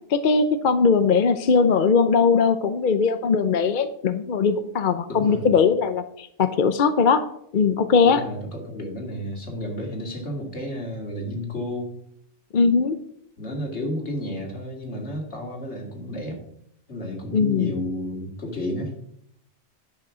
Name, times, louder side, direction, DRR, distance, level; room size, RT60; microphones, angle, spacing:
voice 1, 0.1-7.2 7.5-8.2 12.5-13.0 17.3-17.7, left 5 dB, 50° left, 10 dB, 0.7 m, -20 dB
voice 2, 5.1-5.7 8.0-12.0 13.4-16.4 16.9-18.9, left 1 dB, 70° left, 1 dB, 2.8 m, -32 dB
10.5 x 5.8 x 6.1 m, 0.71 s
omnidirectional pair, 1.2 m